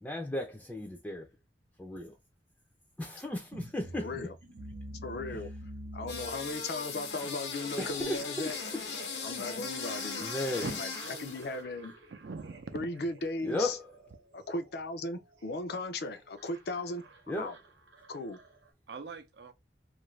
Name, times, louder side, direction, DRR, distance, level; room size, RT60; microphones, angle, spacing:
voice 1, 0.0-1.3 1.8-2.1 3.0-4.1 7.8-8.2 9.8-9.9 10.2-10.7 13.4-13.9 17.3-17.5, left 1 dB, 10° left, 0.4 m, -35 dB
sound 1, 3.5-18.7, right 1 dB, 85° right, 0.8 m, -49 dB
voice 2, 3.9-4.3 5.0-5.5 5.9-8.6 9.2-10.3 10.8-11.9 12.7-13.8 14.3-17.6 18.1-18.4, left 2 dB, 60° left, 0.5 m, -37 dB
sound 2, 6.1-11.5, left 5 dB, 85° left, 0.9 m, -38 dB
voice 3, 10.6-11.4 12.1-12.8 18.9-19.5, right 4 dB, 65° right, 0.5 m, -42 dB
2.6 x 2.5 x 3.1 m
head